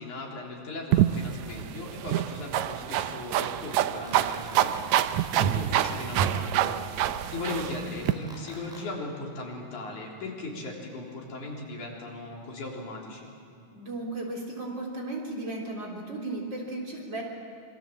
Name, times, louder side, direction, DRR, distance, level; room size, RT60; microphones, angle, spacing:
voice 1, 0.0-13.3, left 2 dB, 90° left, -2 dB, 5.1 m, -38 dB
sound 1, 0.9-8.1, right 11 dB, 75° right, 1.9 m, -26 dB
sound 2, 4.0-4.8 8.0-8.8, equal, ahead, 6.0 m, -47 dB
voice 2, 13.7-17.2, right 2 dB, 35° right, -1 dB, 4.3 m, -35 dB
26.0 x 23.5 x 7.5 m, 2.4 s
omnidirectional pair, 3.4 m